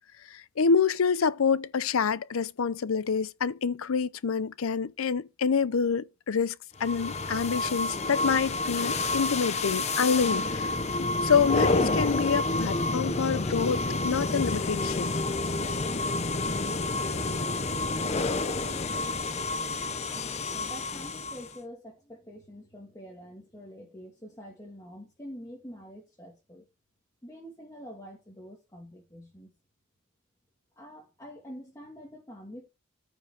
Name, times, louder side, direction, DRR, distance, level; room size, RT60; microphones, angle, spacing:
voice 1, 0.3-6.5 6.8-10.7 11.0-15.1, left 5 dB, 80° left, 0.6 m, -27 dB
sound 1, 6.8-21.6, left 2 dB, 30° left, 0.8 m, -29 dB
voice 2, 18.2-19.1 20.5-26.6 27.2-29.5 30.8-32.7, equal, 15° left, 1.7 m, -46 dB
14.0 x 5.2 x 3.4 m
head